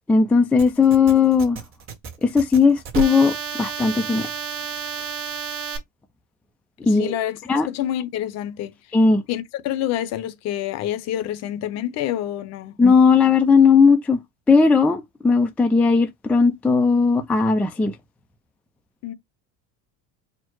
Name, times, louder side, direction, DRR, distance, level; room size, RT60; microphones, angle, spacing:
voice 1, 0.1-1.6 2.2-4.3 6.9-7.2 7.5-7.7 8.9-9.2 12.8-14.2 14.5-17.9, left 5 dB, 5° left, 0.3 m, -17 dB
sound 1, 0.6-5.8, right 7 dB, 35° right, 1.3 m, -31 dB
voice 2, 6.8-8.7 9.3-12.8 19.0-19.1, left 12 dB, 50° left, 0.7 m, -27 dB
4.4 x 2.0 x 4.6 m
cardioid pair, 135°, 34 cm